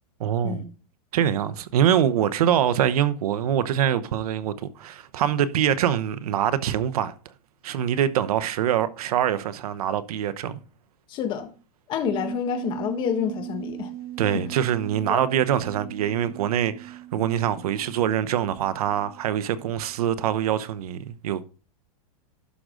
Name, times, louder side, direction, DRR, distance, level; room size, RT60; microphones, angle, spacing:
voice 1, 0.2-0.6 1.1-7.1 7.6-10.6 14.2-21.4, right 10 dB, 70° right, 0.9 m, -24 dB
voice 2, 11.1-11.5 11.9-13.9 14.2-14.4 15.1-15.2, left 9 dB, 25° left, 1.4 m, -28 dB
sound 1, 12.0-20.3 20.7-20.8, right 13 dB, 40° right, 2.2 m, -39 dB
11.5 x 6.4 x 3.8 m
supercardioid pair, 170°, 20 cm